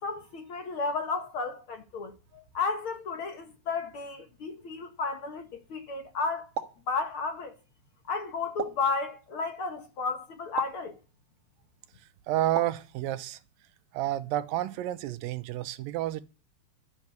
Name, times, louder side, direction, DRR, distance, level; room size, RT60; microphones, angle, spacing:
voice 1, 0.0-6.5 6.9-7.5 8.1-11.0, left 4 dB, 60° left, 1.3 m, -33 dB
sound 1, 6.5-6.9 8.6-8.9 10.6-10.8 12.5-12.9, right 8 dB, 50° right, 1.8 m, -35 dB
voice 2, 12.3-13.4 13.9-16.2, right 14 dB, 80° right, 2.5 m, -30 dB
13.0 x 7.1 x 9.4 m
omnidirectional pair, 4.2 m